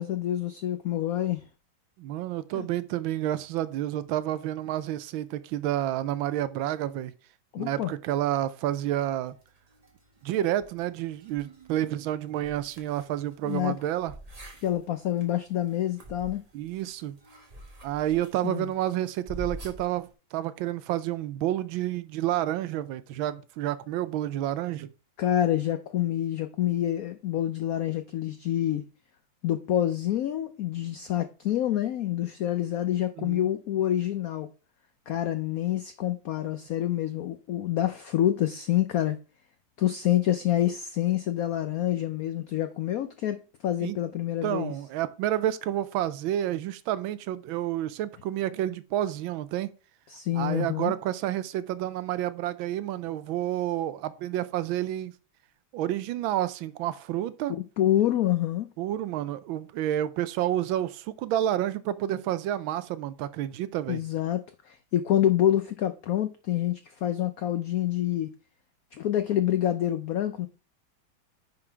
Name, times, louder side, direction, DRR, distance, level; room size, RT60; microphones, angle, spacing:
voice 1, 0.0-1.4 2.5-2.7 7.5-7.9 13.4-13.8 14.6-16.4 18.4-18.7 25.2-28.8 29.4-34.5 35.1-39.2 39.8-44.7 50.1-50.9 57.8-58.7 63.9-68.3 68.9-70.5, left 12 dB, 90° left, 0.7 m, -27 dB
voice 2, 2.0-7.1 7.6-9.4 10.2-14.1 16.5-17.2 17.8-24.9 33.2-33.5 43.8-44.0 44.4-49.7 50.3-55.1 55.7-57.5 58.8-64.0, right 12 dB, 80° right, 1.4 m, -29 dB
sound 1, 8.7-20.1, right 1 dB, 20° right, 1.2 m, -48 dB
9.6 x 3.9 x 4.4 m
omnidirectional pair, 2.2 m